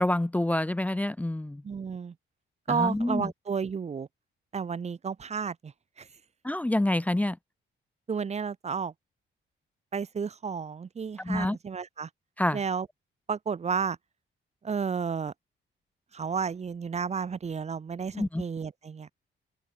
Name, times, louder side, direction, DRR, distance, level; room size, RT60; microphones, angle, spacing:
voice 1, 0.0-1.6 2.7-3.3 6.4-7.4 11.2-11.6 12.4-12.6 18.1-18.4, left 1 dB, 5° left, 0.9 m, -27 dB
voice 2, 1.6-2.1 2.7-4.1 4.5-6.1 8.1-8.9 9.9-12.1 12.5-12.9 13.3-14.0 14.6-15.3 16.1-19.1, right 6 dB, 35° right, 1.2 m, -32 dB
open air
wide cardioid pair, 170°, 20 cm